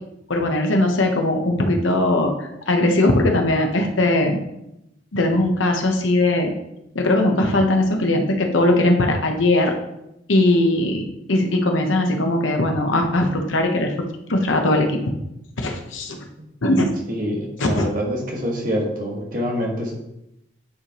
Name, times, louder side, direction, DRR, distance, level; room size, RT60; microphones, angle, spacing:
voice 1, 0.3-2.3 2.7-4.4 5.1-6.5 6.9-9.8 10.3-13.9 14.3-14.9 15.6-16.3 16.6-17.0 17.6-17.9, left 1 dB, 80° left, 3 dB, 1.0 m, -19 dB
voice 2, 17.1-20.0, equal, 45° right, -2 dB, 1.5 m, -25 dB
9.6 x 4.9 x 3.0 m, 0.85 s
head